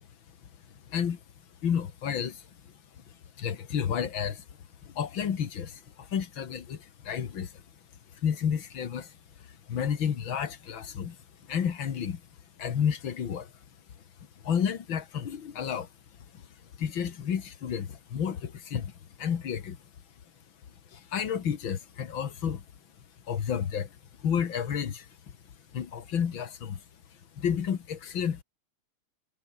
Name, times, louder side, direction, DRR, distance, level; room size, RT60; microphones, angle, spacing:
voice 1, 0.9-1.2 1.6-2.5 3.1-4.5 4.8-7.6 8.1-11.2 11.5-12.2 12.6-13.5 14.4-15.9 16.3-16.4 16.8-18.9 19.2-19.8 20.9-22.6 23.3-24.0 24.2-25.1 25.7-26.8 27.3-28.4, left 8 dB, 65° left, 2.4 m, -31 dB
omnidirectional pair, 2.4 m